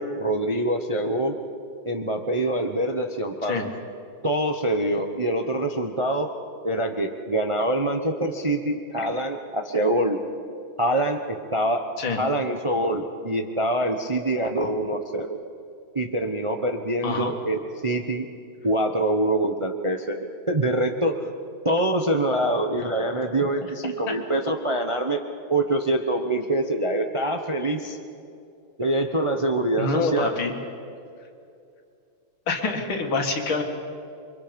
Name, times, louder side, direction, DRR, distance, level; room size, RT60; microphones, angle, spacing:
voice 1, 0.0-1.3 1.8-3.6 4.2-6.3 6.6-10.2 10.8-11.9 12.2-15.3 15.9-18.3 18.6-21.3 21.6-25.2 25.5-28.0 28.8-30.4, right 1 dB, 30° right, 4 dB, 0.5 m, -25 dB
voice 2, 29.8-30.5 32.5-33.6, left 3 dB, 90° left, 3 dB, 2.8 m, -26 dB
28.0 x 24.0 x 5.2 m, 2.5 s
omnidirectional pair, 2.2 m